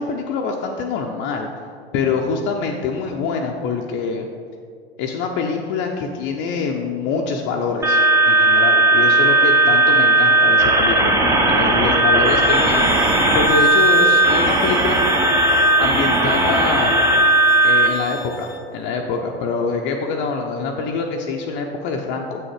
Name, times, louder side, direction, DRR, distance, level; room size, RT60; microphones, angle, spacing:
voice 1, 0.0-1.5 1.9-4.3 5.0-8.0 8.2-15.0 15.8-17.0 17.6-22.4, left 4 dB, 35° left, 1 dB, 0.7 m, -25 dB
sound 1, 7.8-17.9, right 2 dB, 10° right, 0.7 m, -16 dB
sound 2, 12.2-18.6, left 6 dB, 80° left, 0.9 m, -33 dB
7.7 x 6.4 x 4.8 m, 2.3 s
figure-of-eight pair, 95°, 33 cm